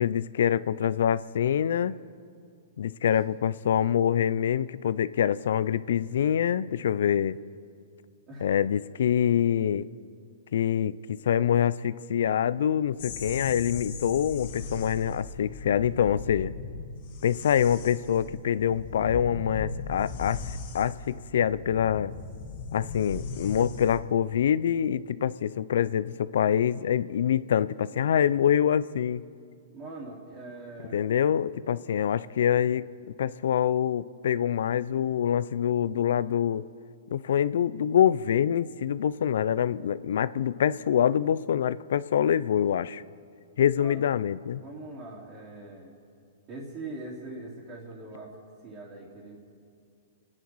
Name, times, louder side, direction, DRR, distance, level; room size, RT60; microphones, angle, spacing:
voice 1, 0.0-1.9 2.8-7.4 8.4-9.9 10.5-16.5 17.2-20.4 20.7-22.1 22.7-29.2 30.9-32.9 33.2-36.6 37.1-43.0 43.6-44.6, left 9 dB, 75° left, 17 dB, 0.5 m, -25 dB
sound 1, 13.0-24.0, left 3 dB, 60° left, 2.0 m, -38 dB
voice 2, 29.7-31.1 43.8-44.1 44.5-45.9 46.5-48.4 48.6-49.4, right 2 dB, 30° right, -8 dB, 3.6 m, -42 dB
27.5 x 9.9 x 4.7 m, 2.3 s
hypercardioid pair, 140°, 0 cm